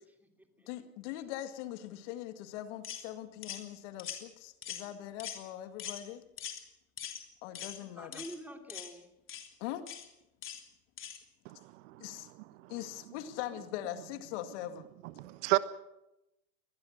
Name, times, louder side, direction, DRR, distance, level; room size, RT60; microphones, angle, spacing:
voice 1, 0.0-0.7 7.6-9.1, right 1 dB, 5° right, 4 dB, 3.0 m, -49 dB
voice 2, 0.7-6.2 7.4-8.2 9.6-9.8 12.0-12.3 12.7-14.9, left 13 dB, 55° left, 9 dB, 2.1 m, -41 dB
sound 1, 2.8-3.0 3.4-3.6 4.0-4.2 4.6-4.9 5.2-5.4 5.8-6.0 6.4-6.6 7.0-7.2 7.5-7.8 8.1-8.4 8.7-8.9 9.3-9.5 9.9-10.1 10.4-10.6 11.0-11.2, left 9 dB, 30° left, 3.2 m, -42 dB
voice 3, 11.4-12.2 12.6-12.7 15.0-15.6, right 21 dB, 60° right, 14 dB, 1.3 m, -33 dB
23.5 x 19.5 x 6.5 m, 0.92 s
hypercardioid pair, 115°, 42 cm